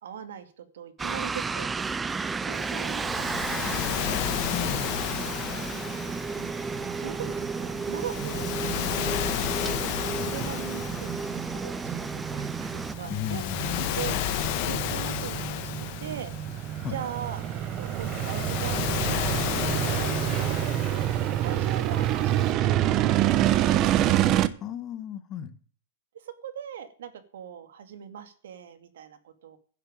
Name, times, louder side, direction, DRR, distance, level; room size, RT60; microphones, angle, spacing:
voice 1, 0.0-1.7 2.0-3.6 3.9-5.4 6.3-8.5 8.8-9.8 10.2-13.4 14.0-14.2 14.6-16.3 16.9-23.0 23.3-24.4 26.1-29.6, right 9 dB, 80° right, 11 dB, 2.3 m, -41 dB
sound 1, 1.0-12.9, right 4 dB, 10° right, 0.5 m, -33 dB
Waves surf, 2.5-22.5, left 11 dB, 45° left, 1.7 m, -33 dB
voice 2, 4.5-5.2 10.1-10.3 13.0-14.0 16.8-17.0 24.6-25.5, left 9 dB, 30° left, 11 dB, 1.5 m, -35 dB
sound 2, 6.7-24.5, right 12 dB, 30° right, 0.9 m, -28 dB
11.0 x 7.5 x 8.8 m, 0.43 s
supercardioid pair, 155°, 0 cm